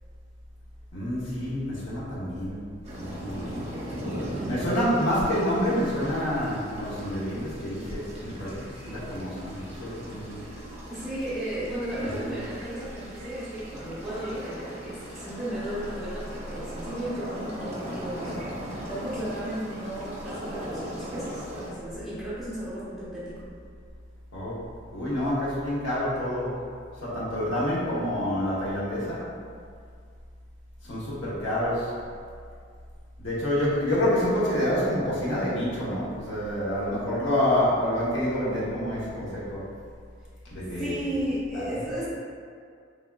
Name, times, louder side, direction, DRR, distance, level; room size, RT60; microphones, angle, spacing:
voice 1, 0.9-2.7 2.9-3.5 4.0-10.4 12.0-12.3 24.3-24.6 24.9-26.6 27.0-29.2 30.8-31.9 33.2-39.6 40.4-40.9 41.5-41.7, left 1 dB, 75° left, -8 dB, 0.8 m, -28 dB
sound 1, 2.8-21.7, equal, 35° right, 0.6 m, -39 dB
voice 2, 10.9-18.4 18.9-23.5 40.6-42.1, right 1 dB, ahead, -11 dB, 0.9 m, -34 dB
3.3 x 2.4 x 2.2 m, 2.2 s
head